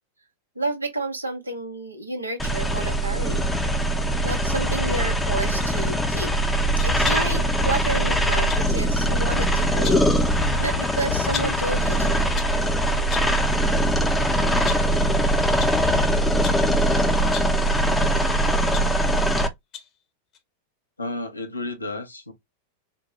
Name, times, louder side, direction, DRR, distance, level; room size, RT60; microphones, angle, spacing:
voice 1, 0.6-3.5 4.2-6.3 6.8-12.3, right 2 dB, 80° right, 0.9 m, -31 dB
sound 1, 2.4-19.5, right 1 dB, 5° left, 0.6 m, -22 dB
sound 2, 5.4-5.7 6.8-7.4 8.5-8.7 9.6-10.2 11.3-11.7 12.2-12.6 13.1-13.4 13.9-14.1 14.6-15.0 15.6-15.8 16.4-16.7 17.2-17.6 18.3-19.4 19.7-20.0 20.3-20.4, left 8 dB, 35° left, 0.8 m, -36 dB
voice 2, 21.0-22.3, left 2 dB, 80° left, 0.8 m, -32 dB
4.4 x 2.1 x 2.9 m
figure-of-eight pair, 90°, 0 cm